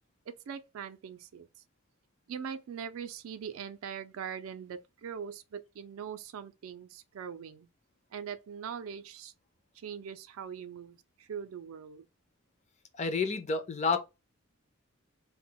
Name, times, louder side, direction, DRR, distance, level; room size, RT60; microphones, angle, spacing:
voice 1, 0.3-1.5 2.3-7.7 8.1-9.3 9.7-12.0, right 7 dB, 75° right, 0.4 m, -42 dB
voice 2, 13.0-14.0, left 4 dB, 35° left, 0.5 m, -29 dB
2.2 x 2.0 x 3.7 m
head